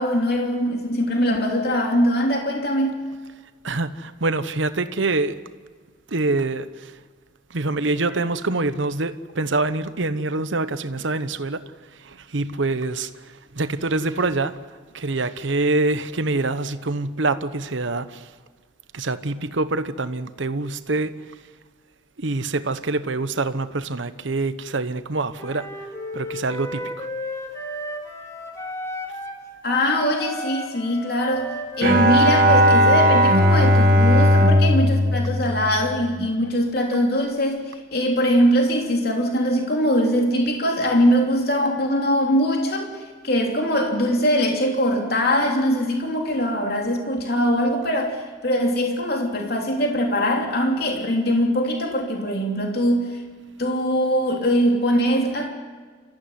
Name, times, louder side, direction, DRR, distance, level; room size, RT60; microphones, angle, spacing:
voice 1, 0.0-3.0 29.6-42.9 43.2-53.2 53.6-55.5, equal, 50° left, 3.2 m, -22 dB
voice 2, 3.6-5.4 6.1-6.9 7.5-11.6 12.0-14.6 14.9-18.3 18.9-21.1 22.2-25.7 26.1-27.1, right 2 dB, 70° right, 1.0 m, -25 dB
Wind instrument woodwind instrument, 25.4-29.4 29.7-33.9, left 1 dB, 15° left, 2.5 m, -33 dB
Bowed string instrument, 31.8-36.3, equal, 45° right, 1.9 m, -17 dB
28.5 x 14.5 x 9.8 m
head